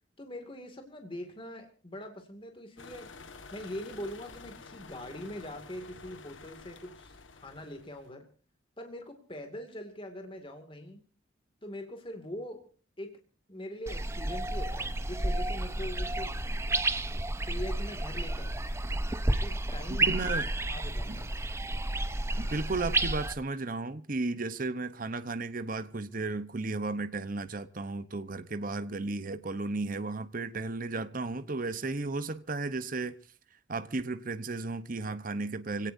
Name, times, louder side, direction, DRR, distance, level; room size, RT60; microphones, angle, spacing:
voice 1, 0.2-3.1 3.5-8.3 8.8-11.0 11.6-12.7 13.0-13.2 13.5-16.4 17.4-18.6 19.3-20.1 20.7-21.5, left 1 dB, 25° left, 2.3 m, -42 dB
sound 1, 2.8-8.1, left 4 dB, 70° left, 1.6 m, -50 dB
sound 2, 13.9-23.3, right 2 dB, 15° right, 0.8 m, -31 dB
voice 2, 20.1-20.5 21.1-21.2 22.4-33.2 33.7-35.9, right 3 dB, 45° right, 0.9 m, -34 dB
26.5 x 17.5 x 2.7 m
head